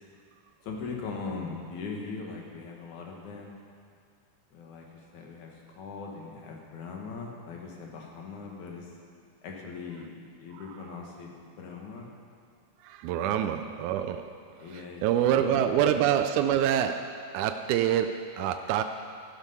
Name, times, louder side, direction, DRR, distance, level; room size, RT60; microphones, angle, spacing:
voice 1, 0.7-3.5 4.5-4.9 5.1-8.9 9.4-10.1 10.4-12.1 13.2-13.5 14.6-15.9, left 4 dB, 65° left, 0 dB, 2.9 m, -40 dB
voice 2, 12.8-18.8, right 10 dB, 80° right, 7 dB, 1.9 m, -27 dB
13.5 x 12.0 x 5.6 m, 2.2 s
omnidirectional pair, 3.7 m